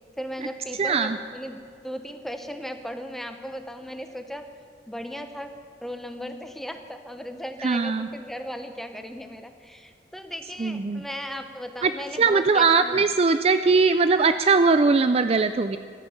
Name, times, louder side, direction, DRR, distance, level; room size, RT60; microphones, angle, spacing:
voice 1, 0.2-1.6 1.8-4.5 4.9-5.5 5.8-13.0, equal, ahead, 6 dB, 0.9 m, -36 dB
voice 2, 0.8-1.2 7.6-8.1 10.6-11.0 11.8-11.9 12.2-15.8, right 4 dB, 35° right, 10 dB, 0.4 m, -20 dB
15.5 x 12.5 x 7.1 m, 2.3 s
head